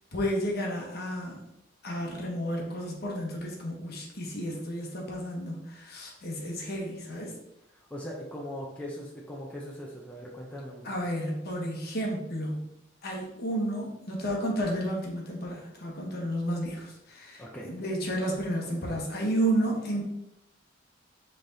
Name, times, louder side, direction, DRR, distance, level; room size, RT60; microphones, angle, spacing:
voice 1, 0.1-1.4 1.8-7.3 10.8-12.7 13.0-20.0, right 1 dB, 50° left, -1 dB, 1.0 m, -32 dB
voice 2, 7.7-10.9 17.4-17.7, equal, 5° left, -3 dB, 0.5 m, -40 dB
5.7 x 3.3 x 2.7 m, 0.85 s
head